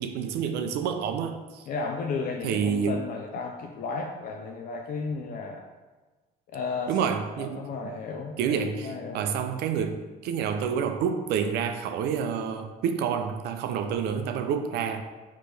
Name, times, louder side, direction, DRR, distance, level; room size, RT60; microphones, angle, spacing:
voice 1, 0.0-1.6 2.4-3.0 6.9-7.6 8.4-15.0, right 7 dB, 75° right, 7 dB, 0.4 m, -28 dB
voice 2, 1.7-5.7 6.5-7.1 7.4-9.2, left 4 dB, 55° left, 1 dB, 0.4 m, -34 dB
4.3 x 3.0 x 3.3 m, 1.2 s
cardioid pair, 110°, 17 cm